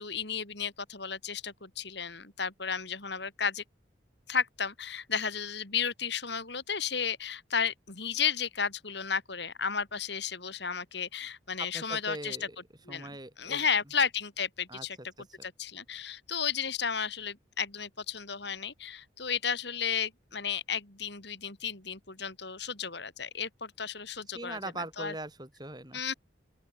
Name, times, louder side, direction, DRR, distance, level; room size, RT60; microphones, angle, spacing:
voice 1, 0.0-3.6 4.3-12.5 12.9-15.0 15.4-24.6 25.0-25.1 25.9-26.1, left 6 dB, 60° left, 3.7 m, -33 dB
voice 2, 11.6-12.6 12.9-13.6 14.7-14.9 24.3-26.0, right 2 dB, 20° right, 6.3 m, -41 dB
open air
head